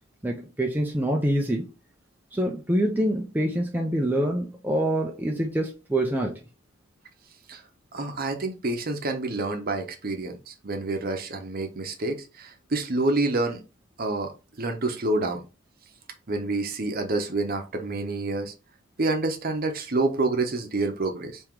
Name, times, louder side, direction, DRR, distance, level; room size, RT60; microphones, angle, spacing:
voice 1, 0.2-1.7 2.3-6.4, right 1 dB, 10° right, 0.5 m, -25 dB
voice 2, 7.9-13.6 14.0-15.4 16.3-18.5 19.0-21.4, right 2 dB, 45° right, 0.8 m, -28 dB
3.7 x 2.9 x 4.5 m
head